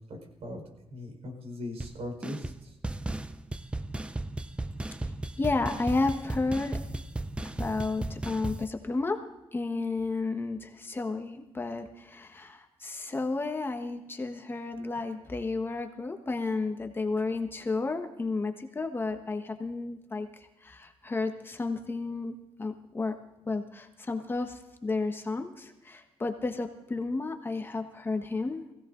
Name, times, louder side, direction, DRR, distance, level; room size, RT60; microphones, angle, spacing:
voice 1, 0.1-0.6 0.9-2.7, left 1 dB, 85° right, 2 dB, 4.6 m, -39 dB
sound 1, 1.8-1.9 2.2-2.6 2.8-8.6, right 2 dB, 10° right, 0.5 m, -35 dB
voice 2, 5.4-6.8 7.4-9.2 9.5-20.3 20.6-23.1 23.5-28.6, left 3 dB, 20° left, 5 dB, 1.3 m, -32 dB
20.5 x 16.0 x 3.9 m, 0.95 s
wide cardioid pair, 150°, 10 cm